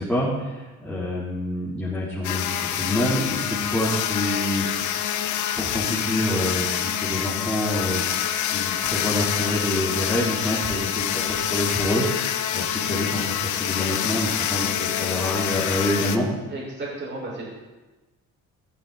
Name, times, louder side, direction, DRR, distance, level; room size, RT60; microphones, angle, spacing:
voice 1, 0.0-4.9 5.5-8.0 8.4-12.0 12.5-16.3, left 1 dB, 5° left, -10 dB, 3.9 m, -27 dB
sound 1, 2.2-16.2, left 10 dB, 75° left, 1.0 m, -26 dB
voice 2, 16.5-17.5, right 2 dB, 40° right, -3 dB, 5.8 m, -34 dB
14.5 x 13.5 x 4.3 m, 1.2 s
cardioid pair, 130°, 30 cm